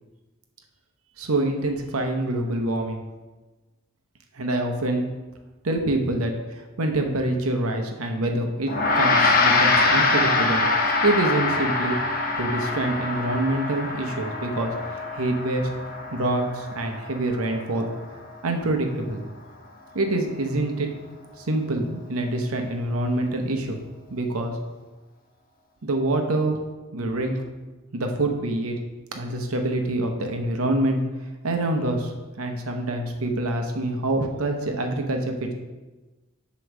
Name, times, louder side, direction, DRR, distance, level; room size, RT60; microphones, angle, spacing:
voice 1, 1.2-3.0 4.3-5.1 5.6-10.6 11.0-12.0 12.4-14.7 15.1-15.7 16.1-17.9 18.4-19.2 19.9-20.9 21.4-23.8 24.1-24.6 25.8-26.6 26.9-27.4 27.9-28.8 29.1-31.0 31.4-35.5, right 2 dB, 90° right, 4 dB, 0.8 m, -26 dB
Gong, 8.7-18.3, left 3 dB, 40° left, 0.8 m, -24 dB
7.9 x 3.1 x 6.1 m, 1.2 s
head